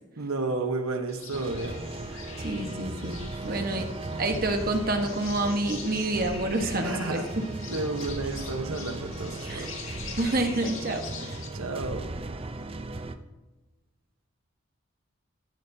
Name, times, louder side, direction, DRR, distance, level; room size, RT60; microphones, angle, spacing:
voice 1, 0.2-1.8 3.3-3.9 6.8-7.3 7.7-9.7 11.5-12.1, right 3 dB, 85° right, 5 dB, 1.1 m, -32 dB
sound 1, 1.1-11.5, left 5 dB, 70° left, 2.0 m, -44 dB
sound 2, 1.3-13.2, right 2 dB, 25° right, 0.6 m, -37 dB
voice 2, 2.4-3.8 4.2-7.2 9.5-9.7 10.2-11.3, right 2 dB, 45° right, 4 dB, 1.3 m, -28 dB
15.0 x 10.5 x 2.8 m, 1.2 s
head